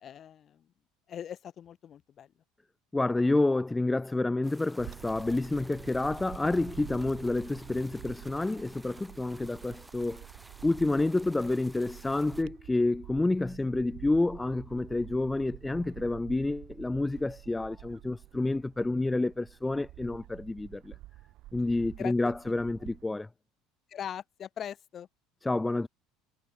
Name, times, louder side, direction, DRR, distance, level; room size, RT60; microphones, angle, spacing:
voice 1, 0.0-0.6 1.1-2.3 22.0-22.3 23.9-25.1, left 9 dB, 40° left, 1.3 m, -41 dB
voice 2, 2.9-10.3 10.6-20.9 21.5-23.3 25.4-25.9, left 2 dB, 10° left, 0.3 m, -29 dB
sound 1, 4.4-12.4, right 1 dB, 10° right, 1.9 m, -54 dB
Bird / Wind, 4.8-23.0, right 17 dB, 55° right, 0.6 m, -48 dB
hypercardioid pair, 70°, 0 cm